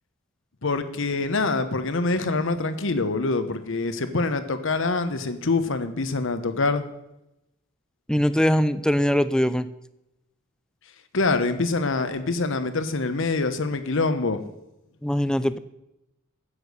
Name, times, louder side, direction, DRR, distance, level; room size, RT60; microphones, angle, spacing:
voice 1, 0.6-6.8 11.1-14.4, left 3 dB, 70° left, 10 dB, 1.0 m, -25 dB
voice 2, 8.1-9.7 15.0-15.6, equal, 5° left, 14 dB, 0.4 m, -21 dB
10.0 x 8.2 x 6.8 m, 0.89 s
head